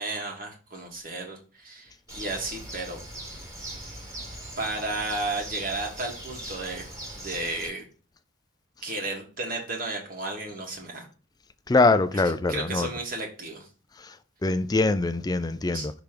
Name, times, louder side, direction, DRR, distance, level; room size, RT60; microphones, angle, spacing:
voice 1, 0.0-3.0 4.6-6.8 7.2-7.9 8.8-11.1 12.5-13.7 15.7-15.9, right 2 dB, 45° right, 1.7 m, -33 dB
Bird, 2.1-7.7, right 1 dB, 15° right, 1.7 m, -40 dB
voice 2, 11.7-12.9 14.4-15.9, left 3 dB, 20° left, 0.3 m, -23 dB
6.0 x 3.4 x 5.1 m
head